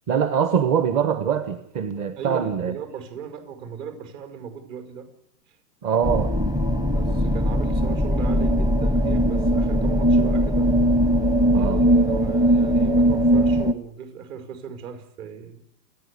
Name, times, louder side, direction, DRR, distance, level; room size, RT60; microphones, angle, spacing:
voice 1, 0.1-2.7 5.8-6.3 11.5-11.8, right 7 dB, 35° right, 9 dB, 1.5 m, -23 dB
voice 2, 2.2-5.1 5.5-5.6 6.9-10.7 11.5-15.6, right 7 dB, 50° right, 7 dB, 5.7 m, -37 dB
sound 1, 6.0-13.7, equal, 5° right, 0.9 m, -20 dB
29.5 x 11.0 x 8.5 m, 0.72 s
hypercardioid pair, 135°, 49 cm